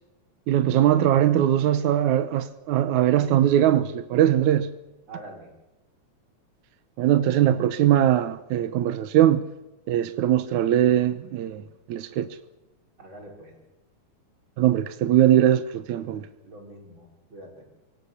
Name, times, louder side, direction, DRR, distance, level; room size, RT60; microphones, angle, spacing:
voice 1, 0.5-4.7 7.0-9.4 9.9-11.6 11.9-12.3 14.6-16.3, right 11 dB, 75° right, 2.3 m, -21 dB
voice 2, 5.1-5.5 13.0-13.6 16.0-17.6, right 1 dB, 35° right, 6.5 m, -45 dB
29.0 x 18.5 x 7.3 m
omnidirectional pair, 3.6 m